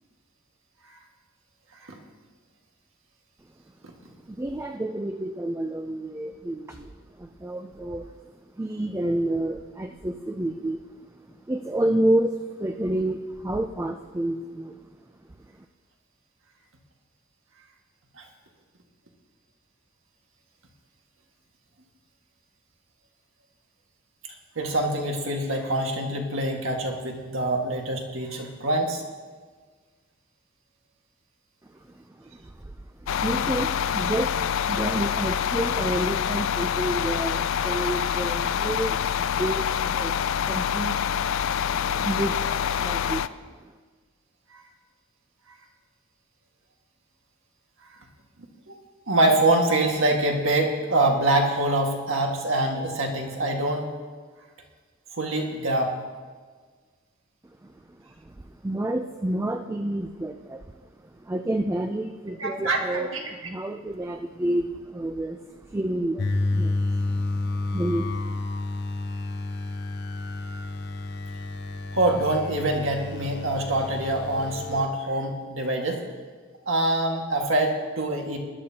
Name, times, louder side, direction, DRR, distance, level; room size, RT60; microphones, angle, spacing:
voice 1, 4.3-8.1 8.6-10.8 11.3-14.8 31.9-32.7 33.2-41.0 41.9-42.4 42.7-43.2 57.6-57.7 58.0-60.8 61.1-68.3, right 1 dB, 15° right, 6 dB, 0.4 m, -29 dB
voice 2, 24.2-29.0 48.7-48.8 49.1-53.9 55.1-55.9 62.4-63.3 71.9-76.0 76.7-78.4, right 2 dB, 80° right, 1 dB, 1.7 m, -25 dB
sound 1, 33.1-43.3, left 8 dB, 75° left, 0.4 m, -26 dB
sound 2, 66.2-74.8, left 2 dB, 55° left, 0.8 m, -30 dB
20.5 x 11.5 x 2.8 m, 1.5 s
head